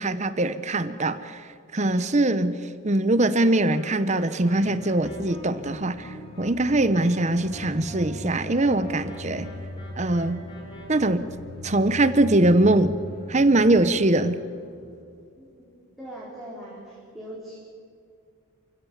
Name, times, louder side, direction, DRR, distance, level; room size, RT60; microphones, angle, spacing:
voice 1, 0.0-2.5 2.8-9.5 10.0-10.4 10.9-11.2 11.6-12.9 13.3-14.4, right 2 dB, 30° right, 13 dB, 0.8 m, -22 dB
sound 1, 3.4-10.8, right 1 dB, 20° left, 7.9 m, -45 dB
sound 2, 4.5-15.2, left 1 dB, 45° left, 1.8 m, -41 dB
voice 2, 15.4-15.7 16.0-17.6, right 1 dB, ahead, -8 dB, 4.8 m, -40 dB
29.5 x 16.0 x 7.4 m, 2.4 s
head